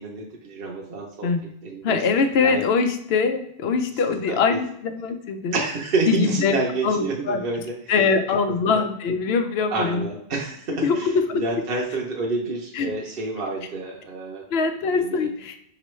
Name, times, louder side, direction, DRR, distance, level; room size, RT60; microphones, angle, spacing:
voice 1, 0.0-1.3 1.6-2.0 2.3-2.6 4.3-4.6 5.5-7.9 8.7-8.8 9.7-14.4 14.9-15.3, right 3 dB, 65° right, -2 dB, 0.9 m, -29 dB
voice 2, 1.8-5.6 6.1-6.5 6.8-7.4 7.9-10.0 10.8-11.4 12.7-12.9 14.5-15.5, left 5 dB, 75° left, 7 dB, 0.8 m, -22 dB
5.3 x 3.0 x 3.1 m, 0.73 s
omnidirectional pair, 1.1 m